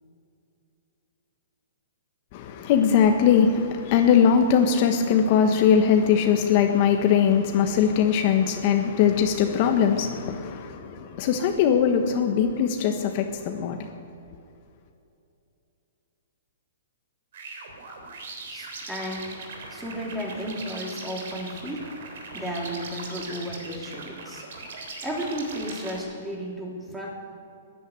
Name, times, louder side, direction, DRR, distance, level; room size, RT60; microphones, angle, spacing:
voice 1, 2.3-13.8, left 7 dB, 45° left, 5 dB, 1.3 m, -21 dB
sound 1, 17.3-26.0, right 3 dB, 65° right, 3.5 m, -40 dB
voice 2, 18.5-19.4 19.7-21.9 22.3-24.5 25.0-27.2, equal, 5° right, -2 dB, 3.1 m, -33 dB
13.5 x 10.0 x 9.7 m, 2.7 s
hypercardioid pair, 140°, 0 cm